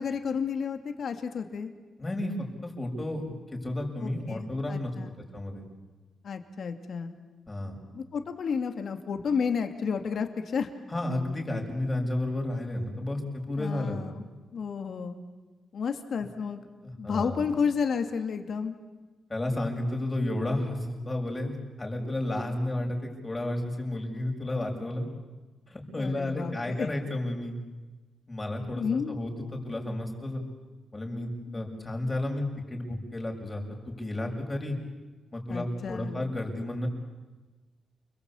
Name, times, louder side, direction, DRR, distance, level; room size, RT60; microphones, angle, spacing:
voice 1, 0.0-1.7 4.0-5.2 6.2-7.1 7.9-10.7 13.6-14.2 14.5-15.2 15.7-16.7 17.0-18.8 25.9-26.9 28.7-29.2 31.5-31.6 35.5-36.1, left 6 dB, 65° left, 6 dB, 2.6 m, -31 dB
voice 2, 2.0-4.9 5.3-5.6 7.5-7.8 10.9-14.2 16.8-17.4 19.3-25.1 25.7-27.6 28.3-30.4 30.9-34.8 35.3-36.9, left 1 dB, 20° left, 1 dB, 6.9 m, -32 dB
30.0 x 22.0 x 8.6 m, 1.2 s
cardioid pair, 85°, 0 cm